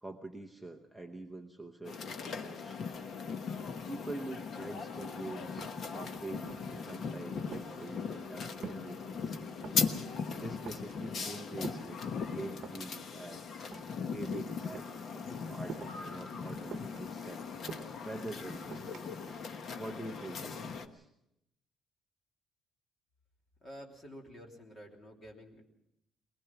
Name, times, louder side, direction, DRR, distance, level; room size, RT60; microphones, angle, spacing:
voice 1, 0.0-2.9 3.9-9.4 10.0-12.0 12.3-13.4 13.7-17.5 18.0-19.4 19.8-21.1, right 2 dB, ahead, 1 dB, 0.9 m, -45 dB
sound 1, 1.8-20.9, left 5 dB, 40° left, 1.2 m, -39 dB
sound 2, 5.1-5.2 5.4-6.1 6.5-6.9 7.2-9.0 9.3-10.0 10.4-11.0 11.6-12.9 13.6-14.4 14.6-15.0 15.7-16.1 16.7-18.1 18.7-19.1, right 6 dB, 45° right, 1.4 m, -47 dB
voice 2, 23.6-25.6, equal, 25° left, 0 dB, 3.2 m, -50 dB
22.0 x 20.5 x 5.9 m, 0.81 s
cardioid pair, 175°, 0 cm